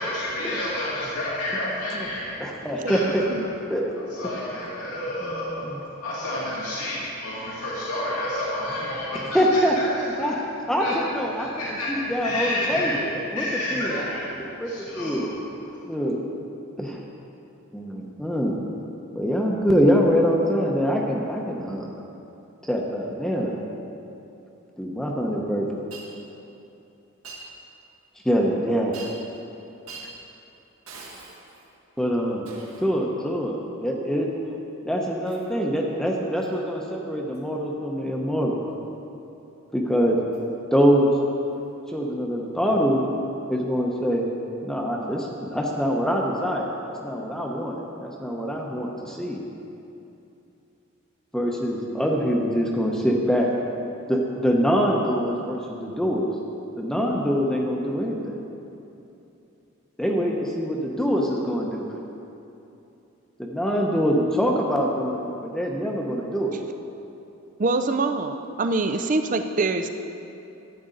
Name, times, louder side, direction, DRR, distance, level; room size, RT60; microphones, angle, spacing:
voice 1, 0.0-3.4 3.9-9.6 10.2-10.3 10.8-10.9 11.4-15.3, left 1 dB, 90° left, -7 dB, 2.2 m, -30 dB
voice 2, 2.4-3.2 3.7-3.9 4.2-4.4 5.2-5.8 9.3-10.3 10.7-11.5 11.9-13.4 13.7-14.0 14.6-14.7 15.0-15.3 15.8-16.3 16.8-17.0 17.7-18.5 19.1-21.9 22.7-23.7 24.8-25.6 28.2-29.1 32.0-32.5 32.8-34.3 34.8-38.6 39.7-40.2 40.7-41.1 41.9-43.0 43.5-44.3 44.6-46.8 47.0-49.4 51.3-53.5 54.1-56.3 56.8-58.4 60.0-61.9 63.4-66.6, equal, ahead, -1 dB, 0.8 m, -24 dB
Shatter, 25.9-26.1 27.2-27.5 28.9-29.4 29.9-30.1 30.9-31.7 32.4-32.9 35.3-35.5 36.4-36.6 37.3-37.5 40.3-40.4 41.5-41.6, right 4 dB, 70° right, 1.7 m, -43 dB
voice 3, 67.6-69.9, right 3 dB, 35° right, 7 dB, 0.5 m, -24 dB
13.0 x 9.4 x 3.9 m, 2.8 s
head